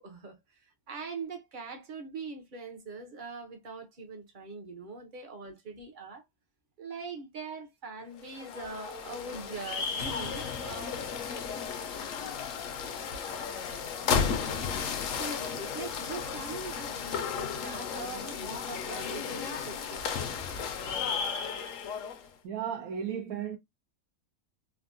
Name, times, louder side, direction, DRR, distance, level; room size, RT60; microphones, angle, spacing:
voice 1, 0.0-6.2 6.8-11.0 15.1-20.4, right 4 dB, 45° right, 0.7 m, -42 dB
sound 1, 8.2-22.3, left 6 dB, 65° left, 1.0 m, -34 dB
voice 2, 22.4-23.6, right 8 dB, 85° right, 1.1 m, -34 dB
3.5 x 2.1 x 2.5 m
omnidirectional pair, 1.5 m